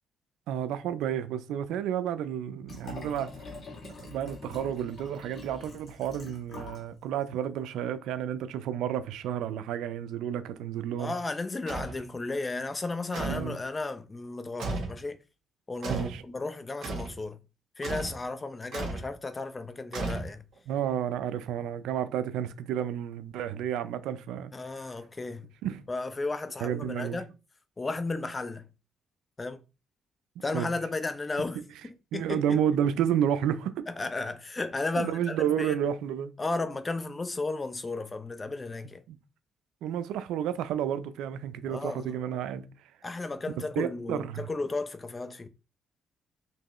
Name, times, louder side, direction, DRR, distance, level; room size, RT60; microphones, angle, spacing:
voice 1, 0.5-3.3 3.8-11.1 13.3-13.6 15.9-16.2 20.7-24.5 25.6-25.8 26.6-27.2 30.5-30.7 32.1-33.9 35.0-36.3 39.1-39.2 39.8-42.6 43.8-44.5, right 9 dB, 90° right, 0.4 m, -31 dB
Liquid, 2.6-6.9 7.2-7.3, left 3 dB, 55° left, 2.2 m, -45 dB
voice 2, 11.0-15.2 15.7-17.4 17.8-20.4 24.5-25.5 25.9-27.3 27.8-28.7 29.4-29.6 30.4-32.6 33.9-35.9 36.4-39.0 41.7-42.2 43.0-45.5, left 3 dB, 25° left, 0.6 m, -34 dB
sound 1, 11.7-12.0 13.1-13.5 14.6-15.0 15.8-16.2 16.8-17.2 17.8-18.2 18.7-19.1 19.9-20.6, right 3 dB, 70° right, 1.4 m, -34 dB
4.5 x 3.0 x 3.0 m
cardioid pair, 90°, 0 cm